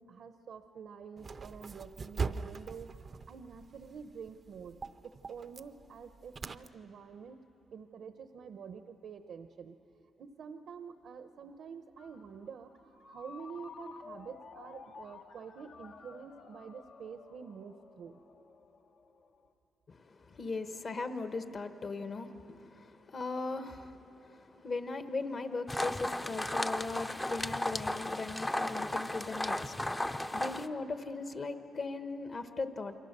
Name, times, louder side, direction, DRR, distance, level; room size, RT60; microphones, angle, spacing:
voice 1, 0.0-7.4 7.7-9.8 10.2-18.2, right 6 dB, 70° right, 8 dB, 0.8 m, -48 dB
sound 1, 1.2-6.7, right 5 dB, 35° right, 0.6 m, -42 dB
Ringtone, 12.0-19.5, left 5 dB, 70° left, 1.3 m, -53 dB
voice 2, 19.9-33.0, left 3 dB, 40° left, 8 dB, 1.2 m, -39 dB
sound 2, 25.7-30.7, left 1 dB, 10° left, 0.6 m, -35 dB
29.0 x 23.5 x 6.7 m, 3.0 s
cardioid pair, 130°, 0 cm